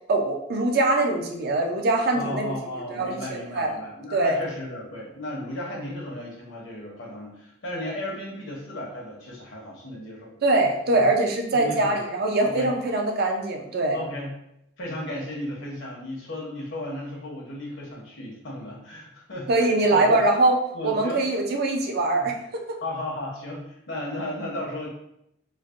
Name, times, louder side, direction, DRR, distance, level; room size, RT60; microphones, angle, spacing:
voice 1, 0.1-2.5 2.9-3.7 4.1-4.4 10.4-14.0 19.5-20.5 20.8-22.3, right 2 dB, 55° right, 2 dB, 0.4 m, -22 dB
voice 2, 2.1-10.4 11.5-12.0 12.4-12.7 13.9-14.3 14.8-20.2 20.7-21.3 22.2-22.3 22.8-24.9, left 1 dB, 75° left, -3 dB, 0.9 m, -35 dB
3.2 x 2.1 x 2.4 m, 0.79 s
head